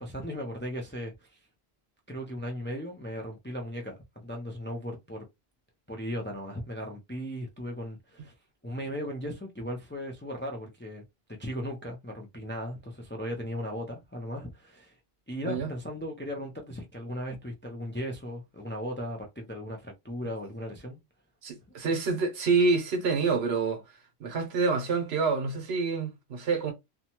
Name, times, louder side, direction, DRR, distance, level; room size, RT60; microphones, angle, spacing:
voice 1, 0.0-1.4 2.1-3.9 4.2-5.2 5.9-8.3 8.6-11.0 11.4-14.9 15.3-21.0, equal, 15° left, 0.4 m, -37 dB
voice 2, 21.4-23.8 24.2-26.7, right 4 dB, 75° right, 1.1 m, -27 dB
2.7 x 2.2 x 2.9 m
omnidirectional pair, 1.1 m